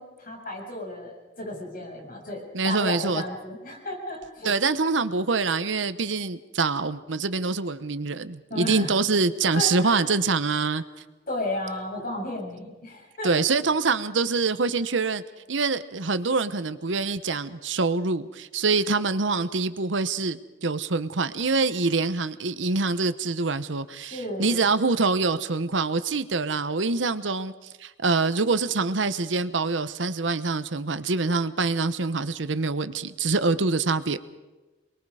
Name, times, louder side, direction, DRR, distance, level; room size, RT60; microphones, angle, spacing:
voice 1, 0.0-4.5 8.5-8.9 9.5-10.0 10.7-10.8 11.3-13.3 24.0-24.7, left 1 dB, 50° left, 0 dB, 7.1 m, -33 dB
voice 2, 2.5-3.2 4.4-10.8 13.2-15.2 15.5-27.5 27.8-34.2, right 4 dB, 80° right, 13 dB, 1.0 m, -25 dB
28.0 x 21.5 x 4.9 m, 1.1 s
head